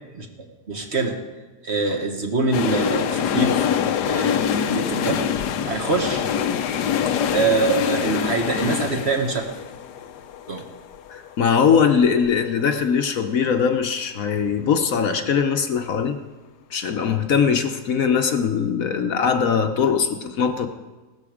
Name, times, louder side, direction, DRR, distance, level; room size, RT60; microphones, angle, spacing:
voice 1, 0.7-1.2 1.6-3.6 4.0-5.2 5.6-6.2 7.3-9.5 10.5-10.6, right 3 dB, 45° right, 3 dB, 1.7 m, -24 dB
sound 1, 2.5-12.3 12.6-12.7, left 8 dB, 85° left, 1.4 m, -25 dB
voice 2, 11.1-16.2 16.7-20.7, left 6 dB, 60° left, 7 dB, 1.2 m, -21 dB
17.0 x 13.0 x 5.0 m, 1.2 s
omnidirectional pair, 1.7 m